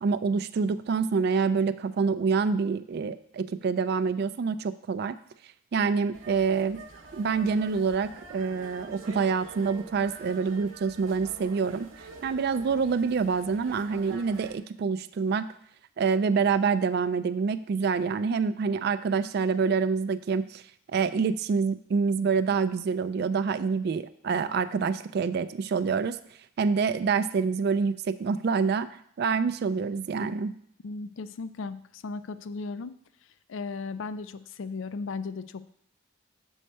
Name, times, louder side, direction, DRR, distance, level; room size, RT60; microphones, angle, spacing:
voice 1, 0.0-5.2 5.7-6.8 7.1-11.9 12.2-15.5 16.0-20.6 20.9-26.2 26.6-28.9 29.2-30.5, right 5 dB, 55° right, 13 dB, 0.3 m, -26 dB
sound 1, 6.1-14.6, right 3 dB, 75° right, 0.9 m, -46 dB
voice 2, 30.8-32.9 33.5-35.7, left 4 dB, 70° left, 14 dB, 0.4 m, -36 dB
6.4 x 4.4 x 6.6 m, 0.66 s
head